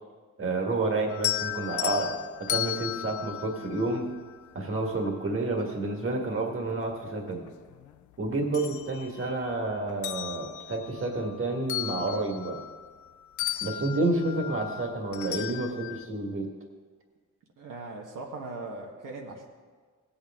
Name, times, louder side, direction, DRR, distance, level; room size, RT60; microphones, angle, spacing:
voice 1, 0.4-4.1 4.5-7.4 8.2-12.6 13.6-16.5, right 2 dB, 45° right, 2 dB, 1.8 m, -30 dB
sound 1, 1.1-4.4 6.1-6.2 6.7-7.9 8.3-9.5 9.9-13.1 13.4-16.0, left 12 dB, 70° left, 0.5 m, -35 dB
voice 2, 17.6-19.5, right 3 dB, 85° right, -1 dB, 1.5 m, -40 dB
17.0 x 8.5 x 3.7 m, 1.5 s
cardioid pair, 110°, 31 cm